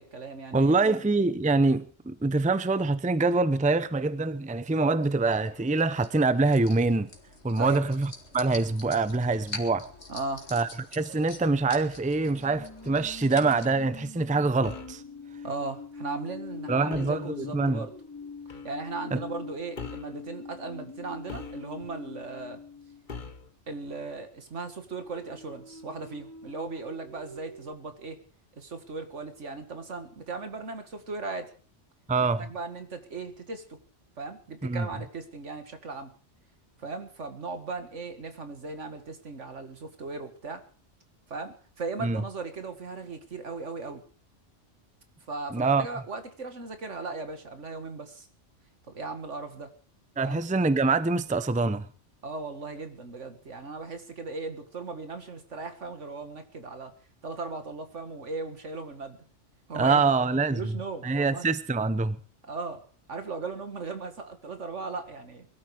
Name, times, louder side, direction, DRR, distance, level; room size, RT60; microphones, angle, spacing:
voice 1, 0.0-0.9 7.6-7.8 10.1-10.5 15.4-17.9 18.5-22.6 23.7-28.2 28.5-31.5 32.4-33.8 34.2-36.1 36.8-40.6 41.3-44.0 45.3-48.3 48.9-49.7 50.2-50.4 52.2-56.9 57.2-59.2 59.7-60.0 60.5-61.5 62.4-62.8 63.1-65.5, right 3 dB, 80° right, 2.3 m, -37 dB
voice 2, 0.5-7.1 7.4-9.9 10.5-15.0 16.7-17.9 19.1-19.2 32.1-32.5 34.6-34.9 42.0-42.2 45.5-45.9 50.2-51.9 59.7-60.6 61.0-62.2, right 3 dB, 10° right, 0.6 m, -25 dB
sound 1, 5.0-13.7, left 2 dB, 65° left, 2.6 m, -45 dB
sound 2, 12.2-23.2 25.0-27.7, left 4 dB, 15° left, 1.1 m, -43 dB
sound 3, 14.6-15.0 16.9-17.3 18.5-18.7 19.8-20.2 21.3-21.9 23.1-23.5, left 5 dB, 45° left, 1.3 m, -41 dB
22.0 x 13.0 x 4.9 m
omnidirectional pair, 1.2 m